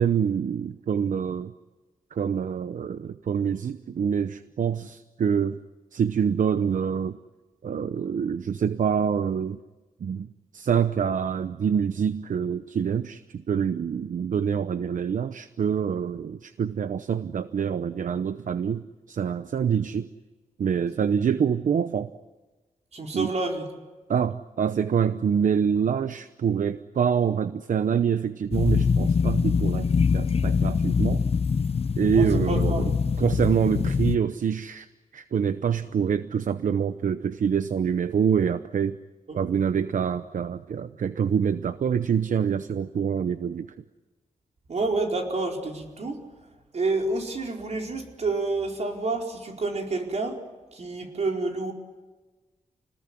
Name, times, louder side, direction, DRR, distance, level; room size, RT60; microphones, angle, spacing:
voice 1, 0.0-1.5 2.1-5.6 5.9-7.2 7.6-9.6 10.0-10.3 10.5-20.1 20.6-22.1 23.1-23.3 24.1-31.2 32.0-32.9 33.2-34.9 35.1-39.0 39.3-43.7, right 7 dB, 75° right, 12 dB, 0.8 m, -26 dB
voice 2, 22.9-23.7 32.1-32.9 44.7-46.2 46.7-50.4 50.7-51.7, right 3 dB, 55° right, 1 dB, 4.7 m, -29 dB
sound 1, 28.5-34.2, left 5 dB, 50° left, 0.8 m, -23 dB
29.5 x 20.0 x 9.9 m, 1.2 s
wide cardioid pair, 130°, 13 cm